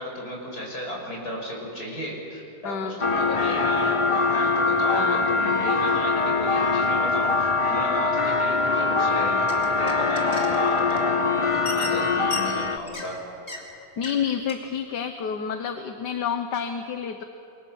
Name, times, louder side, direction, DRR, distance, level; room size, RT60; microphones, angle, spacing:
voice 1, 0.0-11.3 11.6-13.2, equal, 65° left, 0 dB, 6.3 m, -34 dB
voice 2, 2.6-3.0 4.9-5.3 14.0-17.2, left 7 dB, 80° left, 7 dB, 1.7 m, -29 dB
sound 1, 3.0-12.8, left 4 dB, 45° left, 0.4 m, -23 dB
sound 2, 9.3-11.2 11.4-13.2 13.5-13.6 14.0-14.2 14.5-14.6, left 2 dB, 20° left, 3.4 m, -37 dB
29.0 x 23.5 x 7.3 m, 2.7 s
omnidirectional pair, 1.8 m